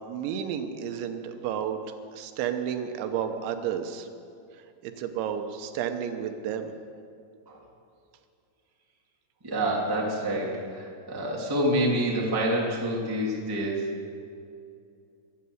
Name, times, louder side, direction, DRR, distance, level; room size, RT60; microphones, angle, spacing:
voice 1, 0.1-4.1 4.8-6.7, right 8 dB, 85° right, 7 dB, 3.3 m, -32 dB
voice 2, 9.4-13.9, right 1 dB, 10° right, -3 dB, 1.3 m, -27 dB
20.5 x 8.6 x 7.9 m, 2.5 s
omnidirectional pair, 5.2 m